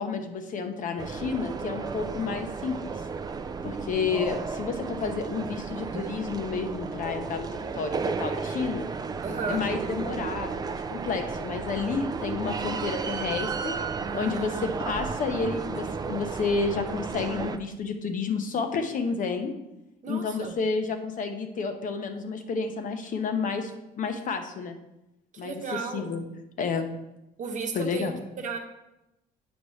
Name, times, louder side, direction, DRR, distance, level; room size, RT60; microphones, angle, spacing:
voice 1, 0.0-2.9 3.6-8.9 9.5-13.7 14.1-19.5 20.1-23.7 24.0-24.8 25.4-26.2 26.6-26.9 27.7-28.1, left 5 dB, 50° left, 6 dB, 0.8 m, -30 dB
sound 1, 1.0-17.6, right 5 dB, 25° right, 0.4 m, -33 dB
voice 2, 9.2-9.6 14.0-14.6 20.0-20.5 25.4-26.1 27.4-28.1 28.4-28.6, right 4 dB, 50° right, 3 dB, 1.0 m, -34 dB
8.0 x 5.1 x 3.2 m, 0.92 s
cardioid pair, 110°, 17 cm